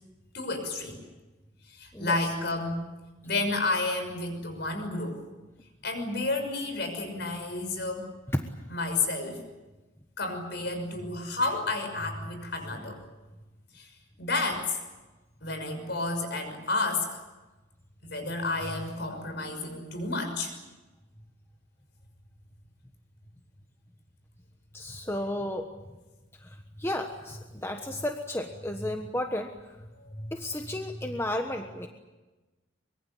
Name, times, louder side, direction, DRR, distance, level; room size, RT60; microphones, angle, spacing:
voice 1, 0.3-1.0 1.7-2.8 3.2-5.2 5.8-8.1 8.7-9.4 10.2-13.0 13.7-13.9 14.2-14.8 15.4-17.2 18.0-20.5 30.0-30.3, left 2 dB, 55° left, 6 dB, 6.1 m, -31 dB
voice 2, 24.7-25.7 26.4-29.8 30.3-31.9, left 1 dB, 10° left, 4 dB, 1.3 m, -33 dB
24.5 x 23.0 x 8.6 m, 1.2 s
head